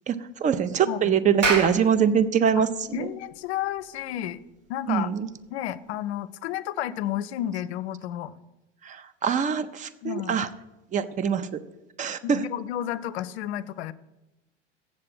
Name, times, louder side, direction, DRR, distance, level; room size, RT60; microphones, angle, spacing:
voice 1, 0.1-3.1 4.9-5.3 8.8-10.5 10.9-11.6 12.0-12.4, right 7 dB, 20° right, 13 dB, 0.5 m, -24 dB
Clapping, 1.2-6.1, right 3 dB, 80° right, 1.7 m, -32 dB
voice 2, 2.9-4.4 4.7-5.1 5.5-8.3 10.0-10.4 12.2-13.9, left 12 dB, 60° left, 15 dB, 0.6 m, -31 dB
7.5 x 7.3 x 6.1 m, 0.98 s
figure-of-eight pair, 80°, 36 cm